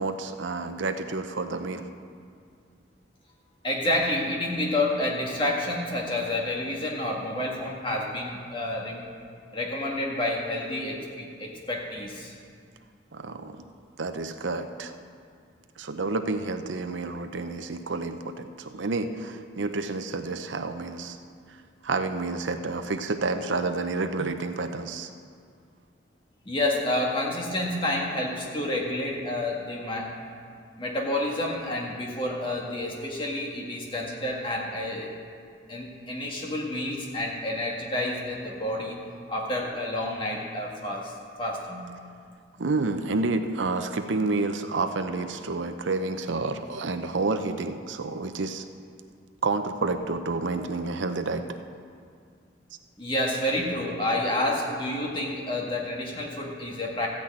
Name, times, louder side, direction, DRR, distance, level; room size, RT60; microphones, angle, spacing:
voice 1, 0.0-1.9 13.1-13.6 14.0-14.9 15.8-21.2 21.5-21.6 21.8-25.1 42.6-48.6 49.4-51.4, right 3 dB, 80° right, 8 dB, 0.7 m, -29 dB
voice 2, 3.6-9.0 9.5-12.3 26.4-30.2 30.8-35.1 35.7-39.0 39.3-41.9 53.0-57.1, left 1 dB, 25° left, -2 dB, 1.8 m, -29 dB
14.0 x 6.2 x 8.8 m, 2.2 s
head